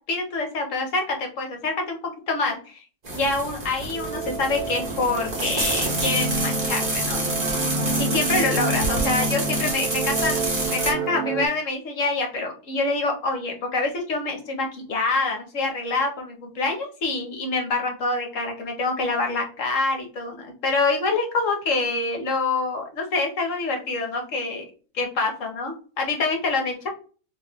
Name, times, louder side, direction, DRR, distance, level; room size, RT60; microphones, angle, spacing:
voice 1, 0.1-2.8 3.1-7.2 8.0-24.6 24.9-26.9, left 3 dB, 55° left, 3 dB, 1.1 m, -26 dB
sound 1, 3.0-10.9, right 2 dB, 30° right, 1.0 m, -28 dB
sound 2, 3.9-11.5, right 3 dB, 65° right, 1.0 m, -28 dB
3.0 x 2.9 x 3.4 m, 0.37 s
omnidirectional pair, 1.8 m